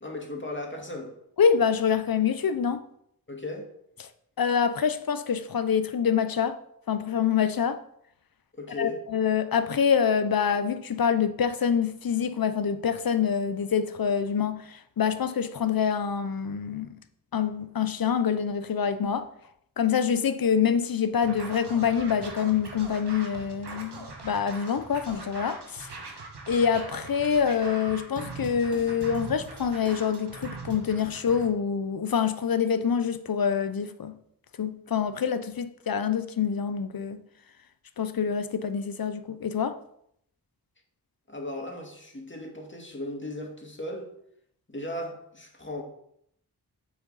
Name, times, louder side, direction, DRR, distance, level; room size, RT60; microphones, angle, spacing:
voice 1, 0.0-1.2 3.3-3.7 8.6-9.0 41.3-44.1 44.7-45.8, left 1 dB, 30° left, 2.1 m, -36 dB
voice 2, 1.4-2.8 4.0-4.1 4.4-6.6 6.9-7.8 8.8-17.0 17.3-19.3 19.8-25.9 26.5-34.2 34.6-37.2 38.0-39.8, left 7 dB, 60° left, 0.7 m, -26 dB
Scratching (performance technique), 21.1-31.5, right 3 dB, 80° right, 1.4 m, -41 dB
7.6 x 6.0 x 4.1 m
cardioid pair, 50°, 40 cm